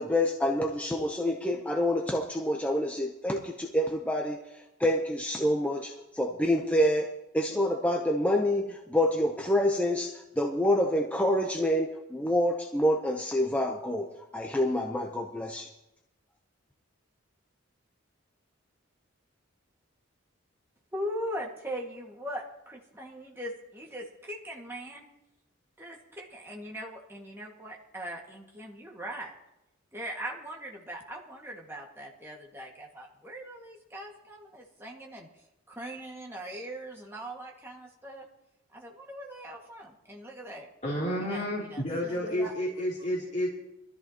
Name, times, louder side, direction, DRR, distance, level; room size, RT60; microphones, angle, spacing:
voice 1, 0.0-15.7, left 1 dB, 5° left, 1 dB, 0.7 m, -27 dB
voice 2, 20.9-25.0 25.8-29.3 29.9-35.3 35.7-38.2 38.7-40.7 41.2-42.5, equal, 10° right, -1 dB, 1.8 m, -40 dB
voice 3, 40.8-43.5, equal, 35° left, -7 dB, 2.9 m, -30 dB
21.0 x 13.5 x 2.9 m, 0.92 s
head